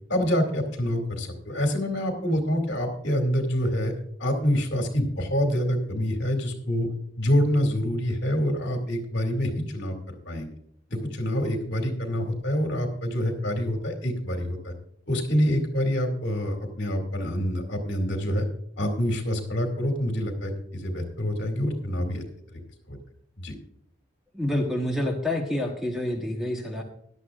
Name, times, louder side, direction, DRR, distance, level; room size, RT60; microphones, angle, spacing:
voice 1, 0.1-3.9 4.2-6.9 7.2-10.5 10.9-14.7 15.1-18.4 18.8-22.2 22.9-23.0 23.4-23.5, equal, 55° left, 4 dB, 2.4 m, -26 dB
voice 2, 24.3-26.8, left 1 dB, ahead, 1 dB, 1.1 m, -27 dB
16.5 x 11.5 x 2.5 m, 0.69 s
head